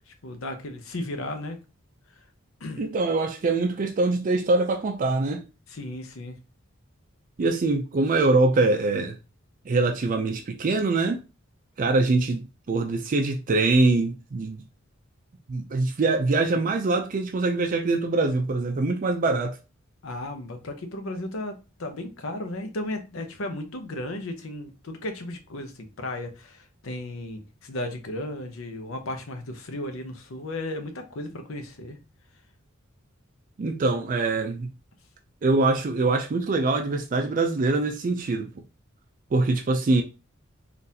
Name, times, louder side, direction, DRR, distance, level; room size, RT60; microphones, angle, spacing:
voice 1, 0.1-1.6 2.6-2.8 5.7-6.4 20.0-21.5 21.8-32.0, left 1 dB, 85° left, 0.7 m, -35 dB
voice 2, 2.8-5.4 7.4-9.2 9.7-11.2 11.8-14.6 15.5-19.6 33.6-34.7 35.4-38.5 39.3-40.0, right 3 dB, 40° right, 0.4 m, -23 dB
3.8 x 2.5 x 2.7 m
head